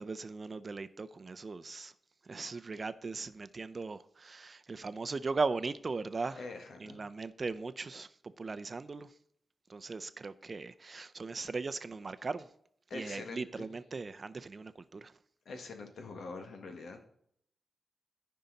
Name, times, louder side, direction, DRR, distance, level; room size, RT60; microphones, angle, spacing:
voice 1, 0.0-1.9 2.3-6.4 6.8-8.1 8.4-9.1 9.7-12.4 12.9-15.0, right 4 dB, 40° right, 0.5 m, -38 dB
voice 2, 6.3-7.0 12.9-13.7 15.5-17.1, left 3 dB, 85° left, 1.7 m, -44 dB
14.0 x 5.6 x 4.0 m
wide cardioid pair, 125°, 0 cm